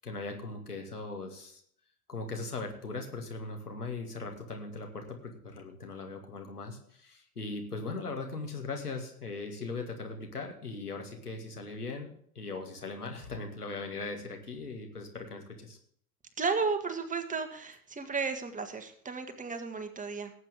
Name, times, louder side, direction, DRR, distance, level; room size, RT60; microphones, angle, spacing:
voice 1, 0.0-1.6 2.1-12.1 12.3-15.8, left 3 dB, 85° left, 3 dB, 2.4 m, -39 dB
voice 2, 16.4-20.3, right 4 dB, 15° right, 8 dB, 1.7 m, -33 dB
18.0 x 8.2 x 3.6 m, 0.63 s
figure-of-eight pair, 80°, 45 cm